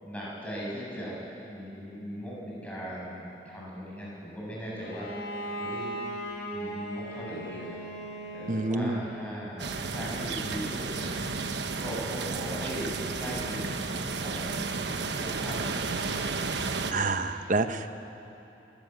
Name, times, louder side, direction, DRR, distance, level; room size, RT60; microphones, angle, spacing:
voice 1, 0.0-1.2 1.5-5.1 5.6-5.9 6.5-7.8 8.3-11.1 11.8-16.2, equal, 10° left, -6 dB, 7.7 m, -38 dB
Bowed string instrument, 4.8-9.5, right 1 dB, 60° left, 4.2 m, -38 dB
voice 2, 8.5-9.0 16.9-17.9, right 3 dB, 45° right, 9 dB, 1.0 m, -28 dB
sound 1, 9.6-16.9, right 4 dB, 70° right, 1.2 m, -32 dB
29.5 x 14.0 x 9.6 m, 2.9 s
head